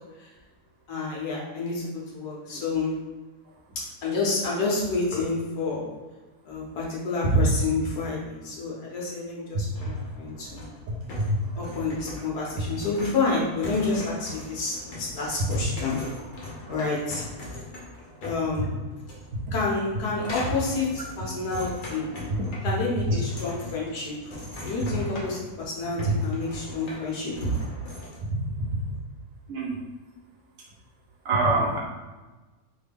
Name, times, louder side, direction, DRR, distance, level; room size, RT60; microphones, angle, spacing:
voice 1, 0.9-2.9 4.0-5.8 6.4-10.6 11.6-16.0 16.7-17.2 18.2-18.7 19.5-22.1 22.6-24.1 24.6-27.5, left 3 dB, 80° left, -4 dB, 1.4 m, -28 dB
sound 1, 9.7-28.2, left 1 dB, 45° left, 0.6 m, -41 dB
voice 2, 10.9-11.5 16.2-16.3 16.7-16.9 18.6-18.7 19.5-19.6 22.3-22.4 23.1-23.2 28.2-28.4 29.5-29.8 31.2-31.8, right 2 dB, 65° right, -2 dB, 0.9 m, -26 dB
3.4 x 2.2 x 3.4 m, 1.2 s
omnidirectional pair, 1.6 m